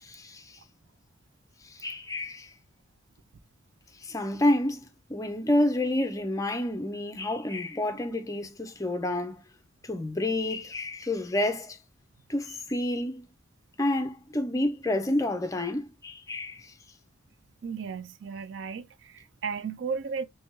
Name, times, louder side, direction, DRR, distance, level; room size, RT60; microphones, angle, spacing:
voice 1, 0.0-0.6 1.6-2.5 4.0-9.4 9.8-11.8 12.3-13.2 13.8-16.7, left 1 dB, 15° left, 0.6 m, -29 dB
voice 2, 17.6-20.3, right 5 dB, 65° right, 0.4 m, -35 dB
3.4 x 3.2 x 3.0 m
head